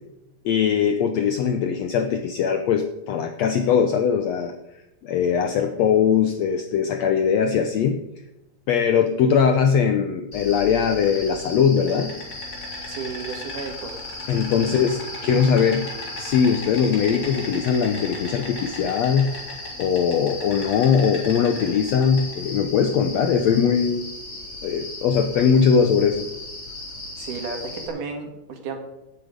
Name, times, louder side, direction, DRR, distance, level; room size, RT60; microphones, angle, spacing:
voice 1, 0.4-4.5 5.0-8.0 8.7-12.1 14.3-15.8 16.2-19.3 19.8-24.0 24.6-26.3, left 7 dB, 75° left, 6 dB, 1.6 m, -20 dB
Insect, 10.3-27.9, left 2 dB, 30° left, 3.5 m, -35 dB
voice 2, 12.9-13.9 14.6-14.8 15.3-15.4 27.2-28.8, right 4 dB, 70° right, 4 dB, 3.2 m, -33 dB
17.0 x 8.0 x 5.1 m, 0.94 s
omnidirectional pair, 3.9 m